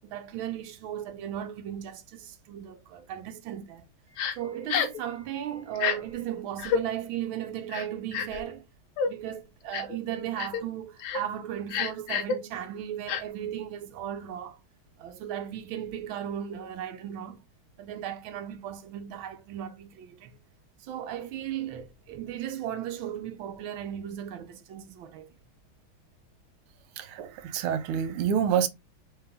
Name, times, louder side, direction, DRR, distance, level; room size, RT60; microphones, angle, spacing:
voice 1, 0.0-3.9 4.4-8.6 9.0-14.6 15.0-17.4 17.8-20.4 20.8-25.3, right 10 dB, 75° right, 1.4 m, -36 dB
Crying sobbing, 4.2-4.3 4.7-5.0 5.7-6.0 6.6-6.8 7.7-8.4 9.0-9.1 9.7-10.0 10.4-10.6 11.0-11.2 11.7-12.3 13.1-13.2, left 7 dB, 75° left, 1.6 m, -28 dB
voice 2, 27.0-28.7, right 8 dB, 90° right, 1.6 m, -27 dB
4.8 x 2.9 x 3.4 m
omnidirectional pair, 2.4 m